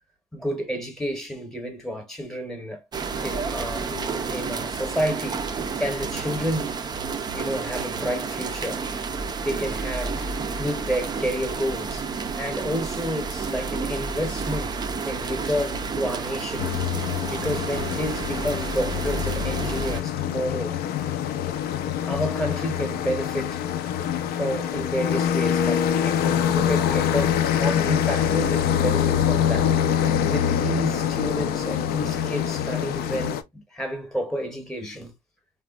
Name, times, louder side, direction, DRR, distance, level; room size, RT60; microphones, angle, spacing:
voice 1, 0.3-2.8 3.2-5.5 5.8-6.7 7.3-8.9 9.4-10.3 10.6-12.1 12.4-16.8 17.3-20.8 22.1-23.6 24.3-35.1, equal, 5° left, 0.8 m, -30 dB
sound 1, 2.9-20.0, right 4 dB, 25° right, 0.3 m, -30 dB
sound 2, 16.6-33.4, left 9 dB, 65° left, 0.4 m, -25 dB
3.3 x 2.1 x 2.3 m
cardioid pair, 110°, 17 cm